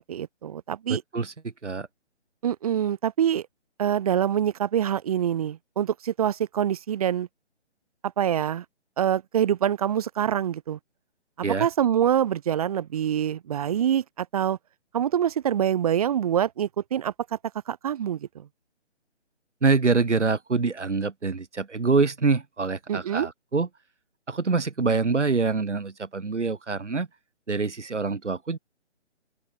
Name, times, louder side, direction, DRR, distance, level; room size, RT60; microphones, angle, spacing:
voice 1, 0.0-1.0 2.4-3.4 3.8-7.3 8.2-8.6 9.0-10.8 11.4-14.6 14.9-17.4 17.7-18.4 22.9-23.3, right 9 dB, 30° right, 4.8 m, -25 dB
voice 2, 0.9-1.9 11.4-11.7 19.6-23.7 24.3-27.1 27.5-28.6, right 4 dB, 80° right, 6.3 m, -25 dB
open air
hypercardioid pair, 165°, 35 cm